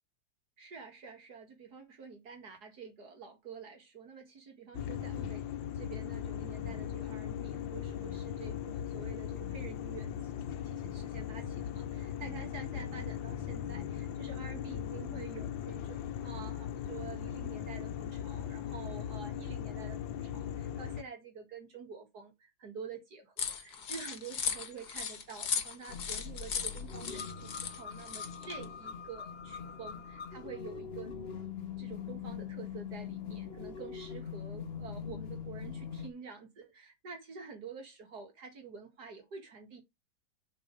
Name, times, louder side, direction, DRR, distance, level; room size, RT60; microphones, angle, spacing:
voice 1, 0.6-5.5 5.7-10.3 10.6-31.1 31.8-39.8, right 5 dB, 55° right, 2.3 m, -48 dB
sound 1, 4.7-21.0, left 9 dB, 85° left, 1.5 m, -39 dB
sound 2, 23.4-28.6, left 7 dB, 60° left, 1.8 m, -37 dB
sound 3, 25.9-36.1, left 7 dB, 40° left, 1.1 m, -42 dB
7.0 x 4.6 x 5.0 m
omnidirectional pair, 2.0 m